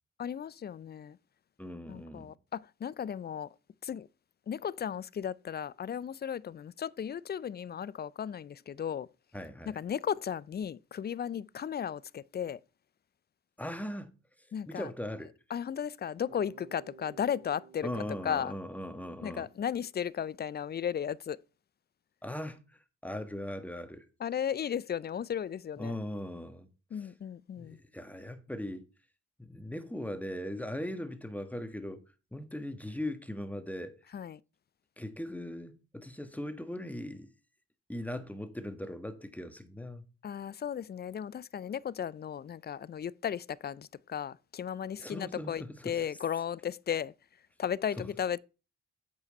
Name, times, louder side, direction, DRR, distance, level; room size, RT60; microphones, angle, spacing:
voice 1, 0.2-1.2 1.9-3.5 3.8-4.1 4.5-9.1 9.7-12.6 14.5-14.9 15.5-18.5 19.2-21.4 24.2-25.9 26.9-27.8 34.1-34.4 40.2-47.1 47.6-48.4, left 8 dB, 30° left, 0.4 m, -35 dB
voice 2, 1.6-2.3 9.3-9.8 13.6-14.1 14.7-15.3 17.8-19.5 22.2-24.0 25.8-27.1 27.6-28.9 29.4-32.0 32.3-34.0 35.0-37.3 37.9-40.0 45.0-46.0 48.0-48.1, left 1 dB, 5° left, 1.4 m, -39 dB
Bass guitar, 16.3-20.2, right 7 dB, 75° right, 1.6 m, -56 dB
8.4 x 4.8 x 4.1 m
hypercardioid pair, 40°, 34 cm